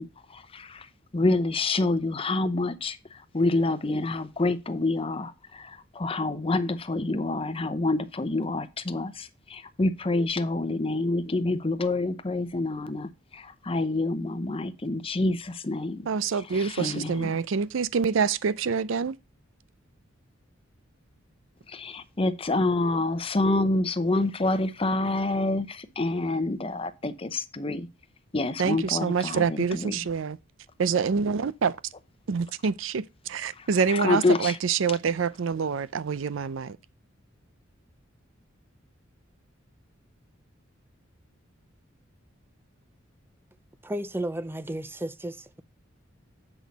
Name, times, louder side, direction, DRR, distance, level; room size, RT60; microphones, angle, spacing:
voice 1, 0.0-16.1 16.5-17.4 21.7-27.9 28.3-30.0 33.6-34.6, left 2 dB, 25° left, 0.7 m, -27 dB
voice 2, 16.1-19.2 28.6-30.4 30.8-31.8 32.3-36.8, right 6 dB, 70° right, 0.5 m, -26 dB
voice 3, 43.8-45.6, right 1 dB, 10° right, 0.4 m, -33 dB
8.0 x 6.3 x 4.0 m
head